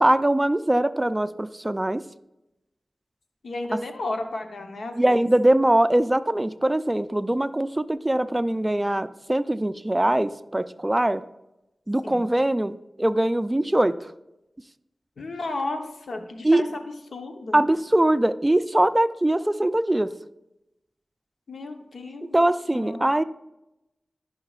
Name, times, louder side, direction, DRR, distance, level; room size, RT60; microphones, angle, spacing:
voice 1, 0.0-2.0 5.0-11.2 11.9-14.1 16.4-16.6 17.5-20.1 22.3-23.2, right 1 dB, 20° right, 13 dB, 0.5 m, -22 dB
voice 2, 3.4-5.2 12.0-12.2 15.2-16.8 17.1-17.6 21.5-22.4 22.7-23.1, left 2 dB, 85° left, 5 dB, 0.9 m, -33 dB
14.0 x 5.7 x 2.4 m, 0.91 s
cardioid pair, 40°, 0 cm